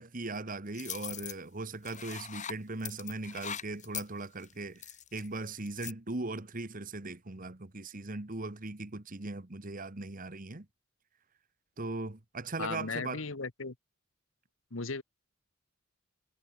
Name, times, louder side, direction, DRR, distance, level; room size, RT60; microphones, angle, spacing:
voice 1, 0.0-10.7 11.8-13.2, right 2 dB, 40° right, 1.5 m, -39 dB
sound 1, 0.7-1.3 1.8-2.5 2.8-5.3 5.7-5.9, left 9 dB, 35° left, 3.2 m, -41 dB
voice 2, 12.6-13.7 14.7-15.0, left 4 dB, 70° left, 1.4 m, -36 dB
head